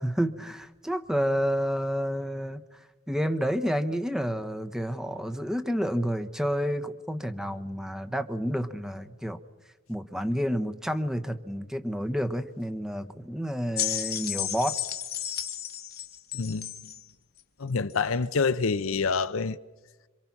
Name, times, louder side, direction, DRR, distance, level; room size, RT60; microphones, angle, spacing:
voice 1, 0.0-2.6 3.1-9.4 9.9-14.8, equal, 5° right, 1.0 m, -29 dB
sound 1, 13.8-17.0 17.9-18.0, left 11 dB, 50° left, 1.2 m, -33 dB
voice 2, 16.3-16.7 17.6-19.6, left 4 dB, 70° left, 0.7 m, -27 dB
27.0 x 25.0 x 6.0 m
head